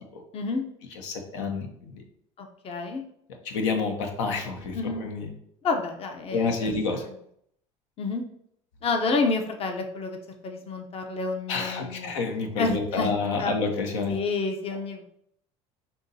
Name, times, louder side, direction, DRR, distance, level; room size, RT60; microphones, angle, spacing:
voice 1, 0.3-0.6 2.4-3.0 4.7-5.1 5.6-7.2 8.0-8.2 8.8-10.2 10.4-12.1 12.6-13.5 14.1-15.1, left 3 dB, 40° left, 4 dB, 0.7 m, -29 dB
voice 2, 1.0-1.7 3.4-5.3 6.3-7.0 11.5-14.2, left 4 dB, 80° left, 3 dB, 0.8 m, -28 dB
5.6 x 2.7 x 2.7 m, 0.70 s
hypercardioid pair, 80°, 15 cm